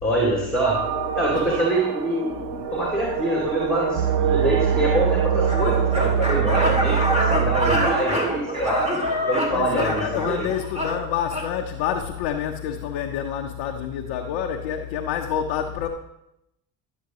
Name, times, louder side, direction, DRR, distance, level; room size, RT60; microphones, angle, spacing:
voice 1, 0.0-0.8 1.1-8.8 9.3-10.4, right 1 dB, ahead, 2.5 m, -25 dB
sound 1, 0.7-6.4, right 7 dB, 60° right, 1.0 m, -28 dB
sound 2, 4.0-8.1, right 9 dB, 75° right, 0.6 m, -23 dB
sound 3, 5.5-11.5, equal, 15° right, 2.4 m, -25 dB
voice 2, 9.5-15.9, left 9 dB, 65° left, 0.9 m, -27 dB
11.5 x 7.3 x 3.0 m
hypercardioid pair, 70°, 46 cm